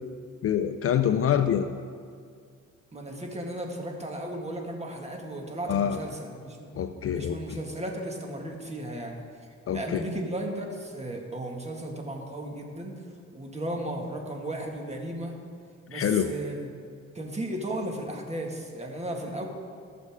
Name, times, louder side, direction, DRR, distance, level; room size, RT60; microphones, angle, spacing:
voice 1, 0.4-1.7 5.7-6.0 6.8-7.4 9.7-10.0 15.9-16.3, left 9 dB, 50° left, 9 dB, 0.5 m, -25 dB
voice 2, 2.9-6.7 7.1-12.9 13.3-15.4 15.9-16.7 17.1-19.4, right 1 dB, 20° right, 1 dB, 1.8 m, -35 dB
17.5 x 6.7 x 3.6 m, 2.1 s
cardioid pair, 90°, 30 cm